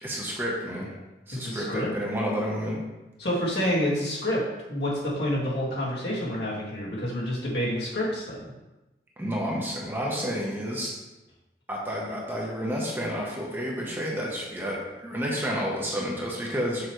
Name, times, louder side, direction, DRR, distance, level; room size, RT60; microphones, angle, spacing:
voice 1, 0.0-0.9 1.3-2.8 9.2-10.9 11.7-16.9, equal, 10° right, -4 dB, 1.0 m, -30 dB
voice 2, 1.4-1.9 3.2-4.4 4.7-8.5, left 1 dB, 70° left, -6 dB, 2.0 m, -28 dB
6.8 x 4.9 x 3.2 m, 1.0 s
head